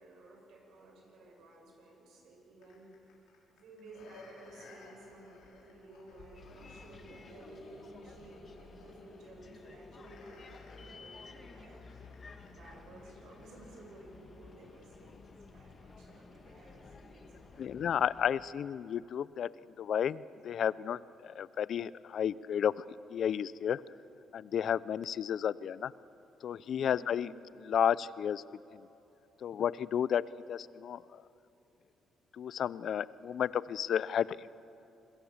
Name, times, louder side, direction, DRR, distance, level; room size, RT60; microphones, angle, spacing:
voice 1, 0.0-2.9 3.5-10.4 10.8-11.8 12.4-17.7 26.7-27.1, right 2 dB, 80° right, 0 dB, 7.9 m, -54 dB
sound 1, 2.6-14.1 14.5-14.6, left 3 dB, 85° left, 5.5 m, -57 dB
Bus, 6.3-18.3, left 4 dB, 40° left, 2.0 m, -54 dB
voice 2, 17.6-19.5 19.8-22.8 23.1-23.8 24.3-25.9 26.4-28.4 28.7-28.8 29.4-31.2 32.4-34.5, left 9 dB, 65° left, 19 dB, 0.5 m, -32 dB
28.0 x 21.5 x 7.4 m, 3.0 s
cardioid pair, 90°, 0 cm